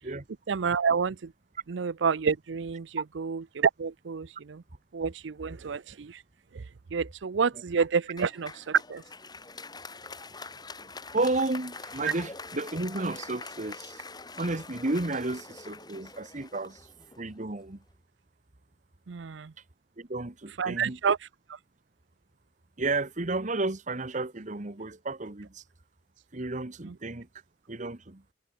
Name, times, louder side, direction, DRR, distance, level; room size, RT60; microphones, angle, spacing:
voice 1, 0.5-1.3 1.7-4.6 4.9-6.2 6.5-6.6 6.9-9.0 12.0-12.1 19.1-19.5 20.6-21.6 26.8-26.9, right 6 dB, 80° right, 0.5 m, -29 dB
Applause, 8.2-17.5, left 3 dB, 25° left, 4.9 m, -44 dB
voice 2, 11.1-14.0 14.4-16.8 17.2-17.8 20.0-21.0 22.8-25.6 26.3-27.3 27.7-28.2, right 2 dB, 40° right, 1.3 m, -32 dB
head